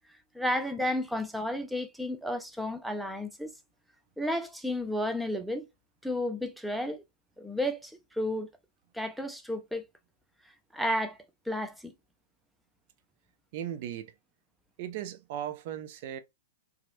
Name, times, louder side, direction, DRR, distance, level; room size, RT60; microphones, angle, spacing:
voice 1, 0.3-3.5 4.2-5.7 6.0-7.0 7.4-8.5 8.9-9.8 10.7-11.2 11.5-11.9, left 1 dB, ahead, 0.5 m, -32 dB
voice 2, 13.5-14.1 14.8-16.2, right 10 dB, 50° right, 0.5 m, -37 dB
2.9 x 2.4 x 2.6 m
figure-of-eight pair, 105°, 0 cm